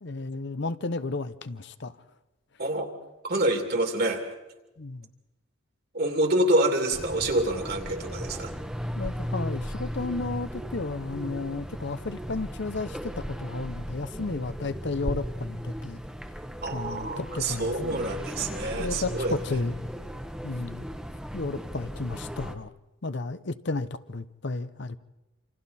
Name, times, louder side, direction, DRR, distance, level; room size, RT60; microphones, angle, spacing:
voice 1, 0.0-2.0 4.8-5.1 9.0-16.0 16.7-18.0 18.8-19.8 20.4-20.9 21.3-22.7 23.0-25.0, left 3 dB, 55° left, 12 dB, 0.7 m, -33 dB
voice 2, 3.2-4.3 5.9-8.5 16.6-19.3, right 1 dB, 50° right, 4 dB, 2.7 m, -27 dB
sound 1, 6.9-22.5, equal, 5° right, 1.0 m, -36 dB
28.0 x 26.5 x 4.2 m, 1.0 s
head